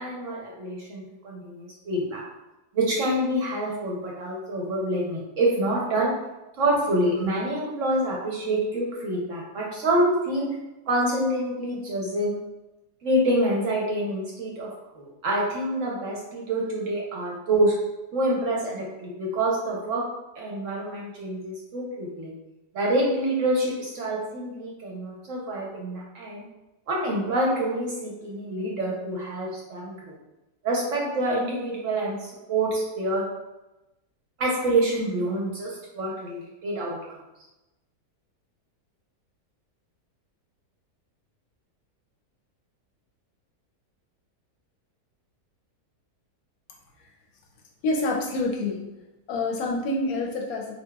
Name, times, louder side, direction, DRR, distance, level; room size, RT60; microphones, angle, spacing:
voice 1, 0.0-2.2 2.7-6.1 6.6-10.5 10.9-12.3 13.0-14.7 15.0-17.7 18.1-20.0 20.4-22.3 22.7-26.4 26.9-30.1 30.6-33.2 34.4-37.0, right 1 dB, 60° right, -3 dB, 0.9 m, -26 dB
voice 2, 47.8-48.8 49.3-50.7, left 2 dB, 70° left, 0 dB, 0.9 m, -27 dB
3.9 x 2.8 x 2.2 m, 1.0 s
omnidirectional pair, 1.7 m